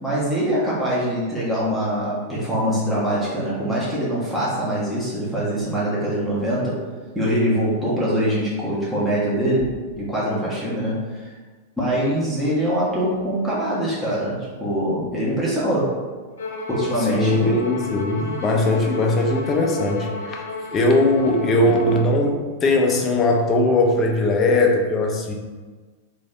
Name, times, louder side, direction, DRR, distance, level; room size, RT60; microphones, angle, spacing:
voice 1, 0.0-6.8 7.1-9.7 10.0-11.3 11.8-16.0 16.7-17.7, equal, ahead, -9 dB, 1.3 m, -23 dB
Bowed string instrument, 16.4-22.1, left 2 dB, 75° left, 0.8 m, -33 dB
voice 2, 17.1-20.4 20.7-25.3, left 2 dB, 30° left, 1 dB, 0.7 m, -20 dB
3.3 x 2.7 x 3.3 m, 1.4 s
hypercardioid pair, 100°, 0 cm